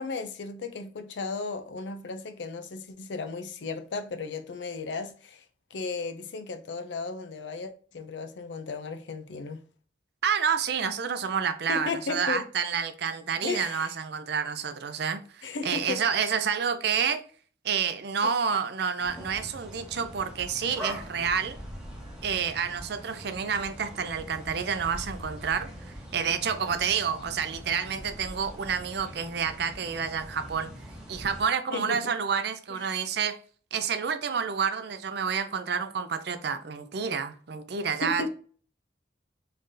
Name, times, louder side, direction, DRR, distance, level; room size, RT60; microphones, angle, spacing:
voice 1, 0.0-5.4 5.7-9.6 11.7-12.5 13.4-13.9 15.4-16.0 18.2-18.4 31.7-32.1 32.7-32.9 38.0-38.3, left 4 dB, 70° left, 0.5 m, -35 dB
voice 2, 10.2-17.2 17.6-21.6 22.2-25.7 26.1-30.7 31.1-33.4 33.7-38.3, right 6 dB, 60° right, 0.5 m, -29 dB
sound 1, 19.0-31.4, equal, 5° right, 1.1 m, -43 dB
3.8 x 3.2 x 2.6 m
head